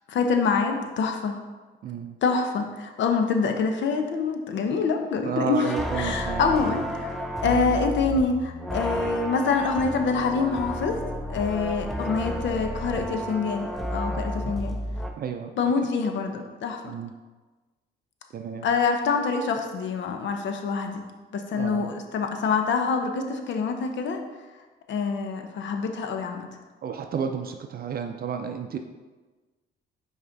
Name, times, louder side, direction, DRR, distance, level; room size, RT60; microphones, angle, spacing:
voice 1, 0.1-1.4 2.2-7.1 7.4-11.0 11.3-14.8 15.6-16.9 18.6-21.1 21.3-24.2 24.9-26.5, left 5 dB, 70° left, 5 dB, 0.8 m, -26 dB
voice 2, 1.8-2.2 5.2-6.6 7.4-7.7 14.1-14.4 15.2-15.5 15.8-15.9 16.8-17.1 18.3-18.7 21.6-21.9 26.8-28.8, right 7 dB, 50° right, 6 dB, 0.5 m, -32 dB
sound 1, 5.6-15.1, equal, ahead, 0.7 m, -32 dB
5.7 x 4.2 x 3.9 m, 1.3 s
cardioid pair, 90°, 20 cm